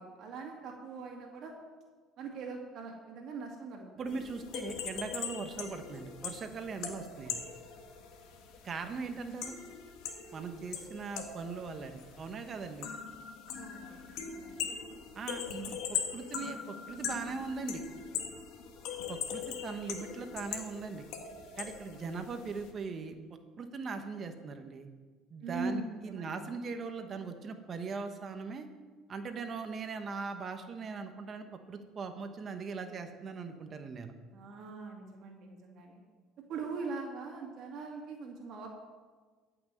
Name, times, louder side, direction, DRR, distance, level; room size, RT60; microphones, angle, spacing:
voice 1, 0.0-1.6 2.2-3.9 13.5-14.8 25.4-26.6 34.3-36.0 36.5-38.7, right 4 dB, 60° right, 1 dB, 2.2 m, -42 dB
voice 2, 3.9-7.4 8.6-9.5 10.3-12.9 15.1-17.8 19.1-21.0 21.6-23.1 23.6-24.9 25.3-28.7 29.1-34.1, right 4 dB, 40° right, 7 dB, 1.1 m, -40 dB
sound 1, 4.1-22.7, left 7 dB, 75° left, 1.7 m, -41 dB
14.5 x 6.1 x 7.7 m, 1.4 s
cardioid pair, 110°, 0 cm